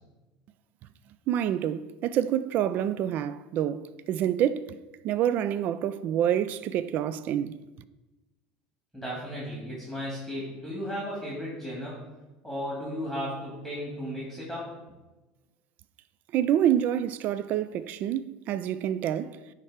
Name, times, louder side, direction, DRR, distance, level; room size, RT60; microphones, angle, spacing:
voice 1, 1.3-4.8 5.0-7.6 16.3-19.4, right 10 dB, 50° right, 0.3 m, -27 dB
voice 2, 8.9-12.0 12.4-14.7, equal, 5° right, 2.4 m, -35 dB
9.8 x 3.3 x 5.0 m
supercardioid pair, 115°, 4 cm